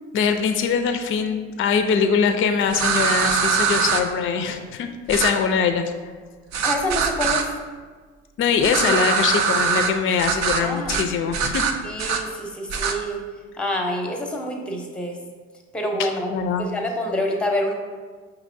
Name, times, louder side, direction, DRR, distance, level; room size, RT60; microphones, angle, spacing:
voice 1, 0.1-5.9 8.4-11.7 16.3-16.7, left 6 dB, 45° left, 7 dB, 0.4 m, -22 dB
sound 1, 2.7-4.0 5.1-5.3 6.5-7.4 8.6-9.9 10.2-10.6 10.9-11.1 11.3-12.2 12.7-12.9, right 6 dB, 70° right, 0.5 m, -22 dB
voice 2, 6.6-7.5 10.6-11.0 11.8-13.2 13.6-15.2 15.7-16.3 16.6-17.7, left 1 dB, 5° left, 1 dB, 0.6 m, -26 dB
5.3 x 2.9 x 2.5 m, 1.5 s
supercardioid pair, 80°, 29 cm